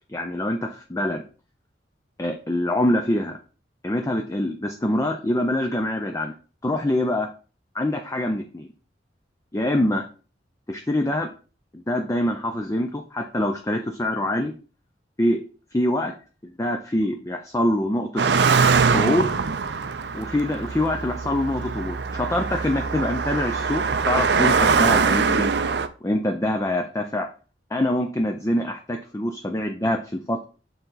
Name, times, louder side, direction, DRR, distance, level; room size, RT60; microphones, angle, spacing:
voice 1, 0.1-1.2 2.2-3.4 3.8-6.3 6.6-7.3 7.7-8.7 9.5-10.0 10.7-11.3 11.9-14.5 15.2-15.4 15.7-16.1 16.6-18.2 18.8-19.3 20.1-25.5 26.0-27.3 27.7-30.4, left 1 dB, 15° left, 4 dB, 0.5 m, -24 dB
Car passing by, 18.2-25.9, right 5 dB, 65° right, 0.5 m, -22 dB
6.8 x 3.9 x 4.0 m, 0.37 s
head